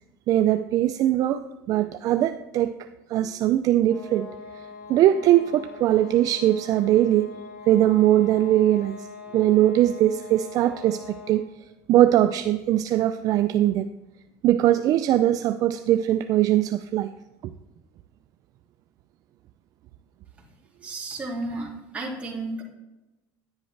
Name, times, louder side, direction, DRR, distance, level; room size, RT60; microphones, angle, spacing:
voice 1, 0.3-2.7 3.1-4.3 4.5-4.6 4.9-7.3 7.7-9.1 9.3-11.5 11.9-13.9 14.4-17.1 17.4-17.5, right 13 dB, 45° right, 9 dB, 0.4 m, -21 dB
sound 1, 3.8-11.5, left 5 dB, 75° left, 3.6 m, -42 dB
voice 2, 20.8-22.6, right 2 dB, 15° right, -3 dB, 2.5 m, -33 dB
10.5 x 10.5 x 3.3 m, 1.0 s
cardioid pair, 140°, 8 cm